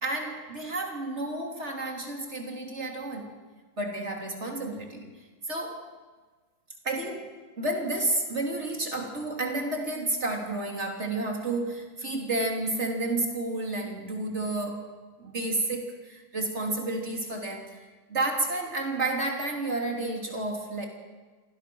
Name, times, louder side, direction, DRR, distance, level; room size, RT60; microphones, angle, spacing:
voice 1, 0.0-3.3 3.8-5.1 5.5-5.8 6.8-14.9 15.2-17.6 18.1-20.9, right 2 dB, 35° right, 1 dB, 3.3 m, -31 dB
27.5 x 19.0 x 6.2 m, 1.4 s
omnidirectional pair, 2.1 m